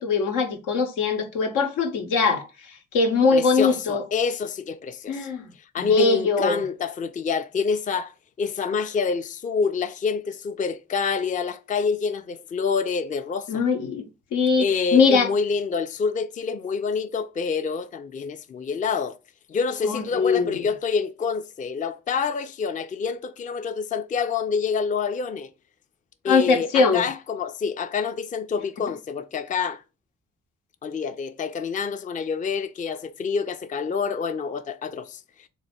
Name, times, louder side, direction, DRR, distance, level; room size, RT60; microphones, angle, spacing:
voice 1, 0.0-2.5 2.9-4.0 5.1-5.5 5.8-6.6 13.5-14.0 14.3-14.7 14.9-15.3 19.8-20.6 26.3-27.1, left 4 dB, 85° left, 0.8 m, -21 dB
voice 2, 3.3-5.3 5.7-8.1 8.4-13.6 14.6-19.2 19.5-25.5 26.2-29.8 30.8-35.2, left 5 dB, 25° left, 0.4 m, -27 dB
3.3 x 2.3 x 4.2 m
supercardioid pair, 50°, 31 cm